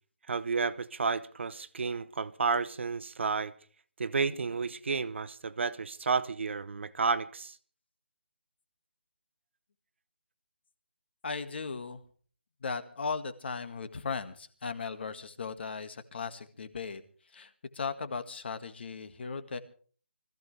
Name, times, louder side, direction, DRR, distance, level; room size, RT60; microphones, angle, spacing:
voice 1, 0.3-3.5 4.0-7.6, right 4 dB, 60° right, 1.1 m, -31 dB
voice 2, 11.2-12.0 12.6-19.6, left 5 dB, 50° left, 1.9 m, -37 dB
25.0 x 15.0 x 3.4 m
hypercardioid pair, 165°, 7 cm